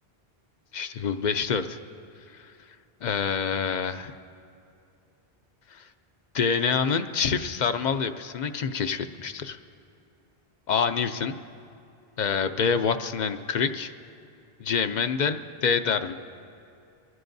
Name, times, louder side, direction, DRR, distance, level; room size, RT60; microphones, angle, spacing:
voice 1, 0.7-1.8 2.3-2.5 3.0-4.1 5.7-5.9 6.3-9.6 10.7-11.4 12.2-13.9 14.6-16.2, left 6 dB, 55° left, 10 dB, 0.6 m, -26 dB
23.5 x 16.0 x 2.6 m, 2.6 s
omnidirectional pair, 1.0 m